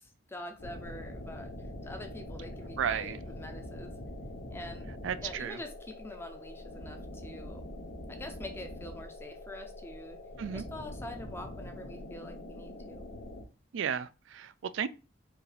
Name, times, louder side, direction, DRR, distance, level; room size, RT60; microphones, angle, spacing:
voice 1, 0.0-1.5 1.8-3.9 4.5-4.9 5.2-7.6 8.1-10.2 10.5-13.1, left 1 dB, 15° left, 0.6 m, -45 dB
sound 1, 0.6-13.4, left 1 dB, 70° left, 0.7 m, -44 dB
voice 2, 2.8-3.2 5.0-5.6 10.4-10.6 13.7-14.9, right 8 dB, 85° right, 0.4 m, -33 dB
4.6 x 2.6 x 3.3 m
head